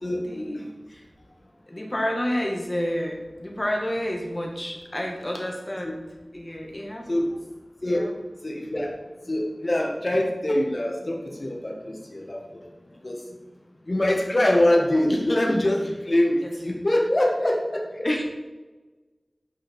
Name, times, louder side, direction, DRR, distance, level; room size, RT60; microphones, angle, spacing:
voice 1, 0.3-1.1 1.7-7.3 7.8-8.1 16.4-16.6 18.0-18.2, equal, 30° left, 0 dB, 2.1 m, -30 dB
voice 2, 8.4-8.9 9.3-12.6 13.0-13.2 13.9-17.8, left 1 dB, 45° left, -1 dB, 1.9 m, -23 dB
9.0 x 5.7 x 5.6 m, 1.2 s
wide cardioid pair, 55°, 0 cm